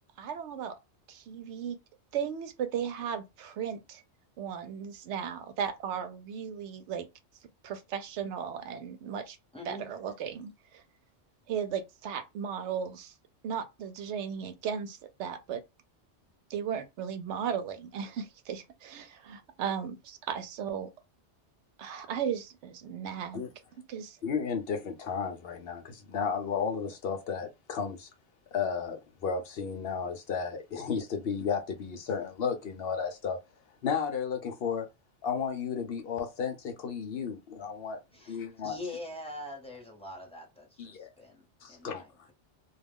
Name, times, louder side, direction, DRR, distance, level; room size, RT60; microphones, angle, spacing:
voice 1, 0.2-0.8 1.1-1.8 2.1-4.0 4.4-7.1 7.6-9.4 9.7-10.8 11.5-13.1 13.4-15.6 16.5-20.9 21.8-23.4 23.9-24.2, right 8 dB, 80° right, 0.9 m, -36 dB
voice 2, 9.5-9.9 38.1-42.3, left 1 dB, 5° left, 0.9 m, -44 dB
voice 3, 24.2-28.1 28.5-33.4 33.8-34.9 35.2-38.0 38.3-38.8 40.8-41.1 41.6-42.0, left 6 dB, 65° left, 0.8 m, -33 dB
2.3 x 2.2 x 3.5 m
omnidirectional pair, 1.2 m